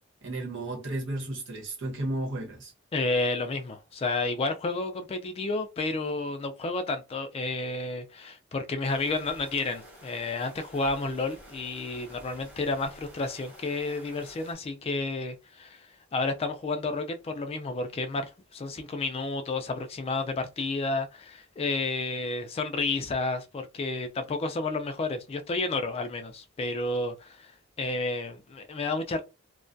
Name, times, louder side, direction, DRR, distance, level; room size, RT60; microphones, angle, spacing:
voice 1, 0.2-2.7, right 1 dB, 65° right, 1.0 m, -33 dB
voice 2, 2.9-27.5 27.8-29.2, left 3 dB, 30° left, 0.3 m, -31 dB
sound 1, 8.8-14.5, equal, 5° right, 0.9 m, -50 dB
2.3 x 2.2 x 2.5 m
head